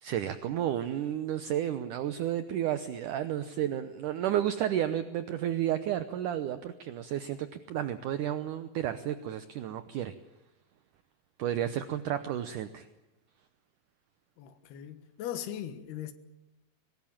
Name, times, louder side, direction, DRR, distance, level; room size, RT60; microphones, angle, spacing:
voice 1, 0.0-10.1 11.4-12.9, right 11 dB, 75° right, 1.8 m, -32 dB
voice 2, 14.4-16.1, left 11 dB, 70° left, 3.4 m, -39 dB
23.5 x 19.5 x 8.8 m
omnidirectional pair, 4.9 m